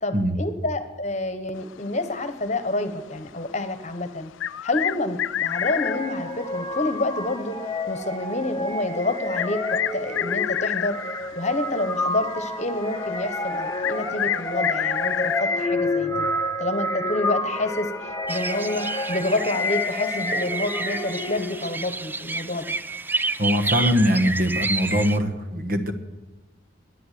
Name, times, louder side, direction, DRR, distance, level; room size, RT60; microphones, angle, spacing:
voice 1, 0.0-4.3 4.6-7.6 7.9-11.0 11.3-16.3 16.6-22.7, left 2 dB, 35° left, 10 dB, 1.2 m, -28 dB
sound 1, 4.4-6.0 7.8-7.9 9.4-11.3 13.8-15.5, left 11 dB, 85° left, 0.3 m, -28 dB
sound 2, 5.5-21.7, left 2 dB, 15° left, 0.9 m, -29 dB
sound 3, 18.3-25.2, right 3 dB, 10° right, 0.3 m, -30 dB
voice 2, 23.4-25.9, equal, 45° right, 8 dB, 1.3 m, -22 dB
11.5 x 9.9 x 9.4 m, 1.2 s
head